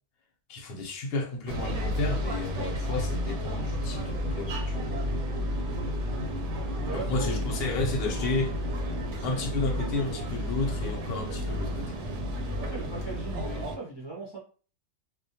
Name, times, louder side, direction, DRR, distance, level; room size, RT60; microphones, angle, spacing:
voice 1, 0.5-4.9 6.9-8.6 9.2-12.0, left 2 dB, 65° left, 0.8 m, -32 dB
sound 1, 1.5-13.8, equal, 75° right, 0.9 m, -31 dB
voice 2, 6.7-7.4 12.6-14.4, right 3 dB, 30° right, 0.5 m, -38 dB
2.2 x 2.1 x 2.8 m
omnidirectional pair, 1.2 m